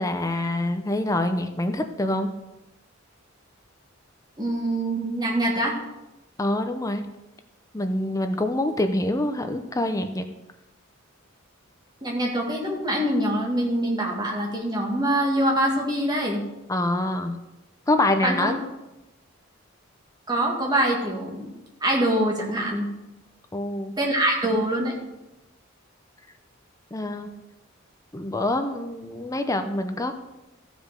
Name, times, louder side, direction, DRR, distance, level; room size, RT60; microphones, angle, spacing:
voice 1, 0.0-2.3 6.4-7.1 7.7-10.3 16.7-17.4 17.9-18.7 23.5-24.0 26.9-27.3 28.1-30.1, left 1 dB, 15° left, 7 dB, 0.6 m, -25 dB
voice 2, 4.4-5.8 12.0-16.4 18.2-18.5 20.3-21.5 21.8-22.9 24.0-24.9, right 1 dB, 20° right, -1 dB, 1.9 m, -24 dB
14.5 x 5.1 x 5.2 m, 1.0 s
head